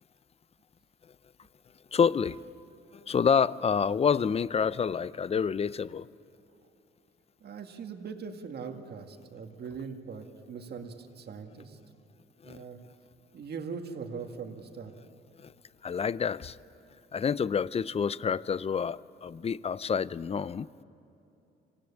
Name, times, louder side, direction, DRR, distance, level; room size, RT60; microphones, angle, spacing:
voice 1, 1.9-2.4 3.1-6.1 12.4-12.6 15.8-16.6 17.1-20.7, left 6 dB, 30° left, 0.5 m, -28 dB
voice 2, 7.4-11.8 12.4-12.8 13.3-14.9, right 5 dB, 55° right, 2.0 m, -41 dB
26.5 x 17.0 x 8.8 m
cardioid pair, 90°, 20 cm